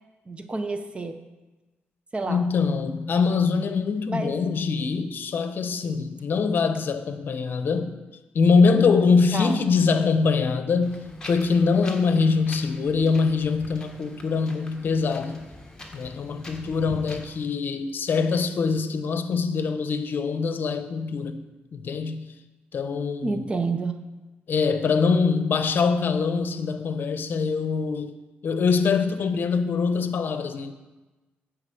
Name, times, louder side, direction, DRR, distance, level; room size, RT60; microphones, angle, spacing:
voice 1, 0.3-1.2 2.1-2.5 4.1-4.3 9.3-9.6 23.2-24.0, right 3 dB, 30° right, 0.6 m, -29 dB
voice 2, 2.3-8.0 8.3-10.9 11.3-15.5 15.9-22.3 22.7-23.4 24.5-28.1 28.4-30.7, left 5 dB, 55° left, 0.8 m, -23 dB
Wind, 10.8-17.2, left 1 dB, 15° left, 1.5 m, -43 dB
9.8 x 4.8 x 7.6 m
cardioid pair, 110°, 4 cm